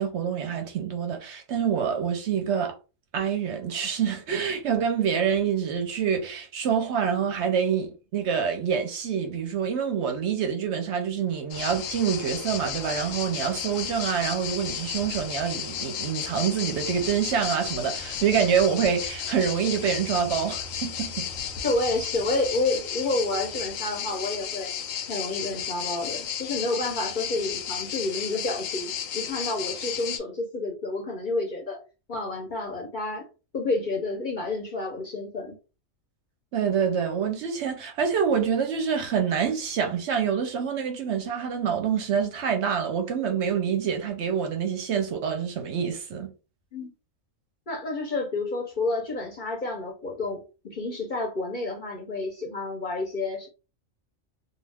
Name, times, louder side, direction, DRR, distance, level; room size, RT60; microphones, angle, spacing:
voice 1, 0.0-2.7 3.1-21.3 36.5-46.3, right 7 dB, 65° right, 0.8 m, -26 dB
sound 1, 11.5-30.2, left 8 dB, 80° left, 1.0 m, -33 dB
voice 2, 21.6-24.7 25.1-31.8 32.1-33.3 33.5-35.6 46.7-46.9 47.7-53.5, left 2 dB, 45° left, 0.7 m, -29 dB
2.3 x 2.3 x 3.3 m
omnidirectional pair, 1.4 m